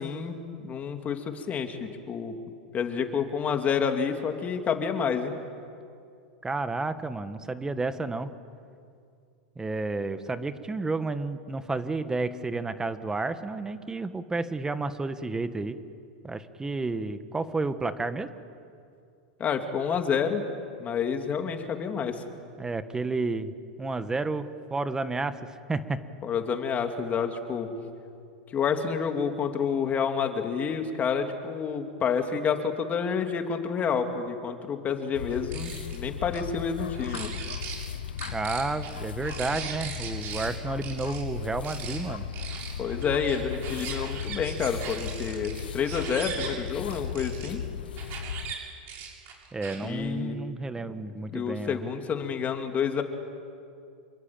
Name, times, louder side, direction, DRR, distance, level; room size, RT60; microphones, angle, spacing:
voice 1, 0.0-2.4 2.7-5.4 19.4-20.4 20.8-22.2 26.2-27.7 28.5-37.4 42.8-47.6 49.8-50.4 51.3-53.0, left 6 dB, 30° left, 5 dB, 3.0 m, -29 dB
voice 2, 6.4-8.3 9.6-15.8 16.2-18.3 22.6-23.5 23.8-26.0 38.3-42.3 49.5-51.9, right 3 dB, 10° right, 11 dB, 1.4 m, -31 dB
sound 1, 35.1-48.5, left 8 dB, 85° left, 0.9 m, -36 dB
sound 2, 35.3-36.0 36.3-36.4 36.9-37.8 38.2-40.5 40.8-41.2 41.6-42.0 42.3-47.5 48.0-48.6 48.9-49.9, right 7 dB, 45° right, 7.2 m, -39 dB
28.0 x 23.0 x 9.1 m, 2.4 s
hypercardioid pair, 110°, 5 cm